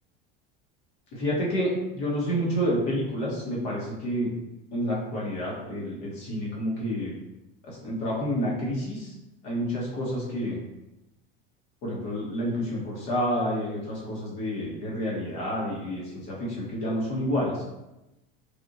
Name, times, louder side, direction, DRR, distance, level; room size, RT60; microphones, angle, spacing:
voice 1, 1.1-4.3 4.7-7.1 7.6-9.1 9.4-10.6 11.8-17.6, equal, 60° left, -5 dB, 1.4 m, -29 dB
3.5 x 2.7 x 2.6 m, 0.95 s
supercardioid pair, 105°, 29 cm